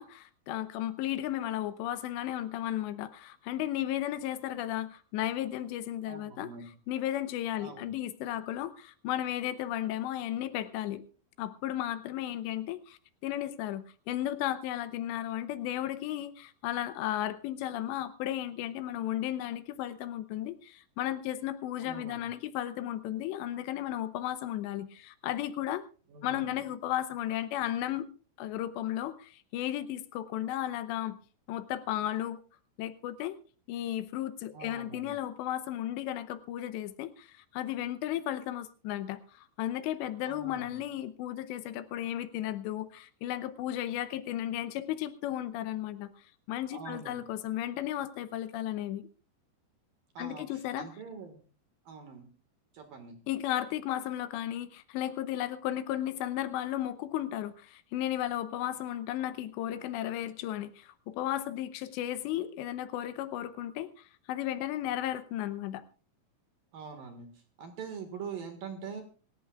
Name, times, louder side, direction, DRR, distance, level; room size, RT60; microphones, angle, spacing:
voice 1, 0.0-6.5 6.9-11.0 11.4-25.8 26.2-28.1 28.4-31.2 31.5-32.4 32.8-33.4 33.7-49.1 50.2-50.9 53.3-65.8, left 12 dB, 85° left, 12 dB, 3.0 m, -34 dB
voice 2, 6.1-6.7 7.6-7.9 21.8-22.3 26.1-26.6 34.5-35.1 40.2-40.8 46.7-47.3 50.1-51.4 51.8-52.3 52.7-53.2 66.7-69.0, right 5 dB, 60° right, 5 dB, 3.1 m, -44 dB
26.0 x 14.0 x 2.4 m, 0.37 s
omnidirectional pair, 5.0 m